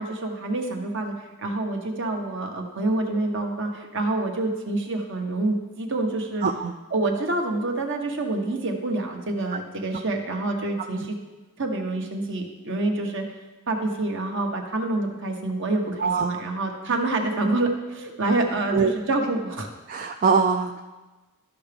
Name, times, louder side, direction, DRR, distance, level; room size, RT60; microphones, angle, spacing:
voice 1, 0.0-6.4 6.9-11.1 11.6-13.2 13.7-19.7, right 2 dB, 55° right, 2 dB, 1.1 m, -27 dB
voice 2, 6.4-6.7 16.0-16.4 18.7-18.9 19.9-20.8, right 5 dB, 40° right, 5 dB, 0.3 m, -23 dB
13.0 x 5.8 x 3.4 m, 1.2 s
head